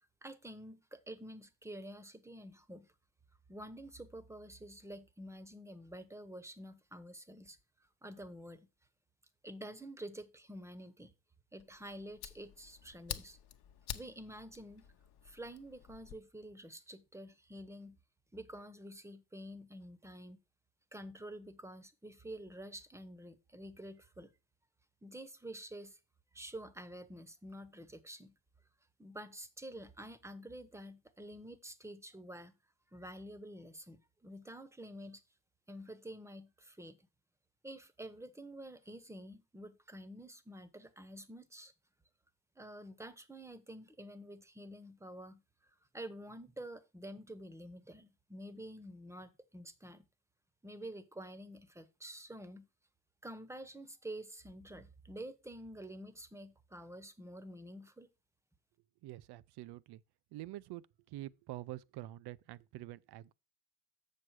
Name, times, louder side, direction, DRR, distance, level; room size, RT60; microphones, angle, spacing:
voice 1, 0.2-2.9 3.5-7.6 8.0-8.7 9.4-11.1 11.5-13.4 13.9-14.9 15.2-18.0 18.3-20.4 20.9-24.3 25.0-26.0 26.3-28.3 29.0-32.5 32.9-35.2 35.7-37.1 37.6-41.7 42.6-45.4 45.9-50.1 50.6-52.7 53.2-58.1, right 1 dB, 5° right, 1.0 m, -49 dB
Fire, 11.6-16.2, left 10 dB, 55° left, 1.0 m, -48 dB
voice 2, 59.0-60.0 60.3-63.3, right 16 dB, 55° right, 0.6 m, -47 dB
7.3 x 6.6 x 4.7 m
supercardioid pair, 85°, 47 cm